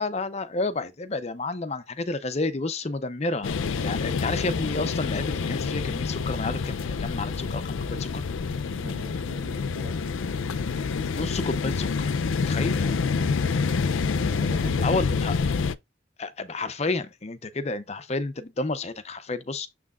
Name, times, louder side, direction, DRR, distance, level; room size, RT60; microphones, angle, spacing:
voice 1, 0.0-3.5 3.8-8.2 11.1-12.1 12.5-12.8 14.8-15.4 16.2-19.7, left 3 dB, 35° left, 0.5 m, -30 dB
sound 1, 3.4-15.8, left 5 dB, 80° left, 0.5 m, -27 dB
voice 2, 8.7-10.1 12.6-13.9 14.2-15.0, equal, 50° right, 1.3 m, -44 dB
7.1 x 6.0 x 2.4 m
head